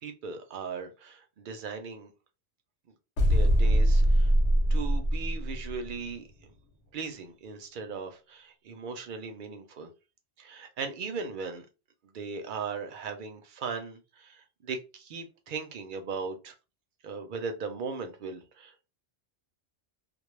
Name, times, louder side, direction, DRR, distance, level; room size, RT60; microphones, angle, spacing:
voice 1, 0.0-2.1 3.3-4.3 4.7-6.2 6.9-9.9 10.4-11.7 12.1-16.5 17.0-18.8, right 5 dB, 60° right, 0.6 m, -38 dB
sound 1, 3.2-5.9, equal, 70° left, 0.9 m, -23 dB
2.2 x 2.0 x 3.0 m
omnidirectional pair, 1.2 m